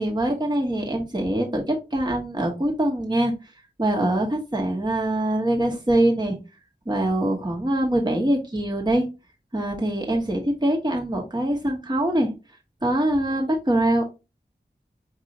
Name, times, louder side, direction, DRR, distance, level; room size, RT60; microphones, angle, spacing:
voice 1, 0.0-3.3 3.8-6.4 6.9-9.0 9.5-12.3 12.8-14.0, right 1 dB, 25° right, 0 dB, 1.1 m, -23 dB
5.2 x 2.6 x 2.8 m, 0.27 s
wide cardioid pair, 45°, 18 cm